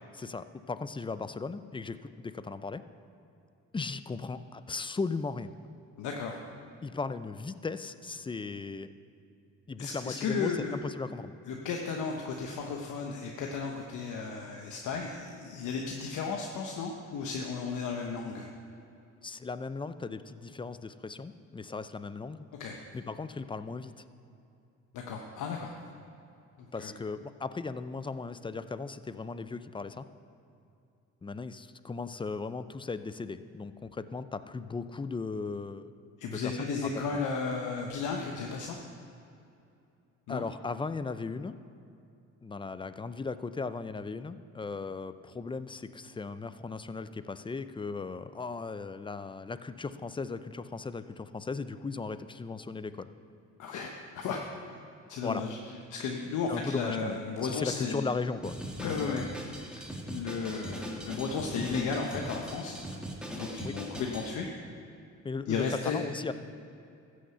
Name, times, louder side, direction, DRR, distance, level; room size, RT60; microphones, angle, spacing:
voice 1, 0.1-2.8 3.7-5.5 6.8-8.9 9.7-11.3 19.2-22.5 22.9-24.0 26.7-30.1 31.2-35.9 36.3-37.2 40.3-41.6 42.4-53.1 55.2-55.4 56.5-59.3 63.6-63.8 65.2-66.3, left 4 dB, 15° left, 13 dB, 0.5 m, -37 dB
voice 2, 6.0-6.4 9.8-10.7 11.5-18.5 22.6-22.8 24.9-25.8 26.8-26.9 36.2-38.8 40.3-40.4 53.6-54.4 55.1-55.6 55.9-58.0 58.8-59.2 60.0-62.8 63.3-64.5 65.5-66.0, left 5 dB, 80° left, 1 dB, 1.0 m, -34 dB
Drum kit, 58.4-64.3, equal, 5° right, 1.9 m, -40 dB
13.5 x 6.5 x 7.9 m, 2.6 s
cardioid pair, 90°, 30 cm